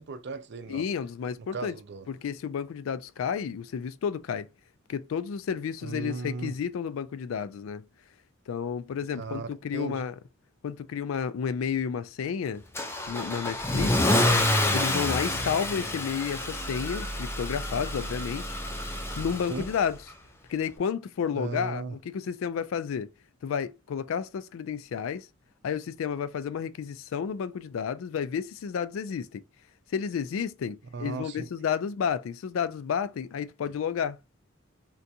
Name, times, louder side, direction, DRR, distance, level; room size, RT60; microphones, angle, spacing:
voice 1, 0.0-0.8 1.4-2.1 5.8-6.6 9.2-10.1 19.5-19.7 21.3-22.0 30.9-31.5, right 4 dB, 60° right, 0.5 m, -36 dB
voice 2, 0.7-1.7 2.1-4.5 4.9-7.8 8.5-10.1 10.6-12.6 13.1-14.2 14.7-18.6 19.2-20.0 20.5-23.1 23.4-25.3 25.6-29.4 29.9-34.2, left 7 dB, 80° left, 0.3 m, -31 dB
Car / Engine starting / Accelerating revving vroom, 12.8-19.9, left 1 dB, 10° left, 0.5 m, -28 dB
3.8 x 2.3 x 2.6 m
head